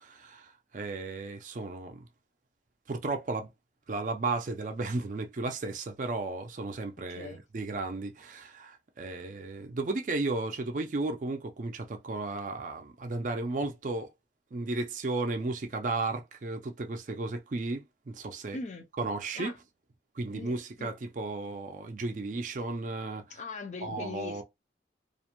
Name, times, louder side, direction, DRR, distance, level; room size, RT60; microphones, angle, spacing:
voice 1, 0.0-2.0 2.9-3.5 3.9-14.1 14.5-18.6 19.0-19.5 20.2-23.4 23.8-24.4, right 3 dB, 45° right, 0.4 m, -34 dB
voice 2, 7.1-7.4 18.5-18.9 19.3-19.6 20.3-21.0 23.3-24.4, left 3 dB, 40° left, 0.4 m, -40 dB
2.4 x 2.1 x 2.8 m
head